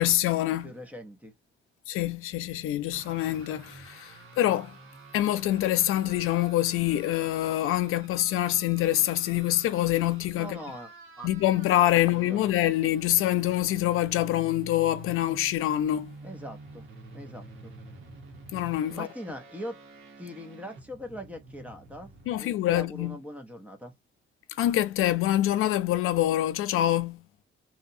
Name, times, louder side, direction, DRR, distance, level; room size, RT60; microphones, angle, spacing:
voice 1, 0.0-0.7 1.9-4.7 5.1-10.6 11.2-16.1 18.5-19.1 22.3-23.2 24.5-27.2, left 13 dB, 85° left, 0.4 m, -25 dB
voice 2, 0.5-1.3 10.4-10.9 11.2-11.3 12.1-12.6 16.2-16.9 17.1-17.7 18.9-19.8 20.2-22.1 22.4-23.9, equal, 5° right, 0.5 m, -41 dB
sound 1, 2.9-22.4, right 3 dB, 70° right, 1.0 m, -49 dB
2.8 x 2.1 x 2.6 m
cardioid pair, 180°, 21 cm